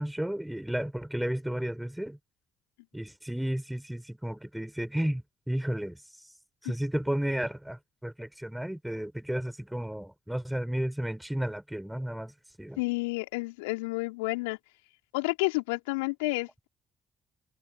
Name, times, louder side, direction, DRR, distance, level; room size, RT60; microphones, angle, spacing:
voice 1, 0.0-2.2 2.9-6.3 6.6-12.3 12.6-12.8, right 1 dB, 5° right, 5.5 m, -33 dB
voice 2, 12.8-14.6 15.1-16.7, left 25 dB, 75° left, 3.6 m, -30 dB
figure-of-eight pair, 45°, 0 cm